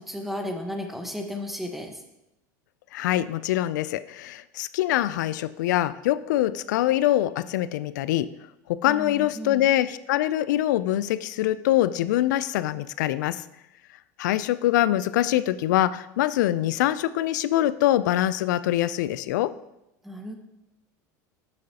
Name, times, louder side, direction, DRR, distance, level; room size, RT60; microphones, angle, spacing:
voice 1, 0.0-2.0 8.9-9.6 20.0-20.3, left 1 dB, ahead, 4 dB, 1.2 m, -34 dB
voice 2, 2.9-8.3 8.7-13.4 14.2-19.5, left 14 dB, 80° left, 16 dB, 0.4 m, -24 dB
9.7 x 6.6 x 2.8 m, 0.87 s
hypercardioid pair, 90°, 10 cm